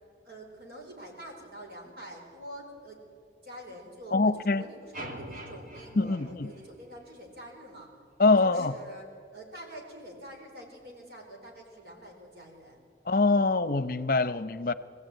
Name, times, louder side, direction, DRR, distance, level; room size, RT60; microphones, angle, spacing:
voice 1, 0.2-3.0 3.4-7.9 8.4-9.0 9.3-12.8, equal, 65° right, 4.8 m, -46 dB
voice 2, 4.1-4.6 6.0-6.5 8.2-8.7 13.1-14.7, left 3 dB, 50° left, 0.8 m, -24 dB
sound 1, 4.9-7.2, right 1 dB, 50° right, 2.1 m, -44 dB
23.0 x 15.0 x 9.2 m
head